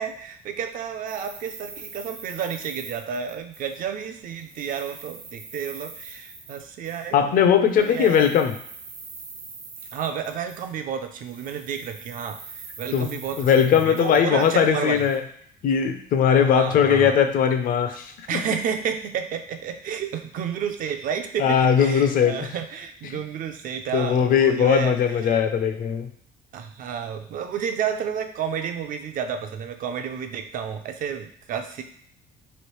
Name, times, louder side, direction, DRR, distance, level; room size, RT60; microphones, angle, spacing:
voice 1, 0.0-7.5 7.8-8.3 9.9-15.1 16.4-17.1 18.3-24.9 25.3-25.4 26.5-31.8, right 7 dB, 55° right, 7 dB, 0.4 m, -31 dB
sound 1, 1.1-4.0 4.3-7.1 7.7-10.9 11.2-15.2, right 4 dB, 80° right, 1.0 m, -43 dB
voice 2, 7.1-8.5 12.9-13.1 13.4-15.2 15.6-18.4 21.4-22.5 23.0-23.2 23.9-26.1, left 8 dB, 55° left, 7 dB, 0.5 m, -20 dB
3.1 x 2.5 x 3.1 m, 0.65 s
cardioid pair, 110°, 17 cm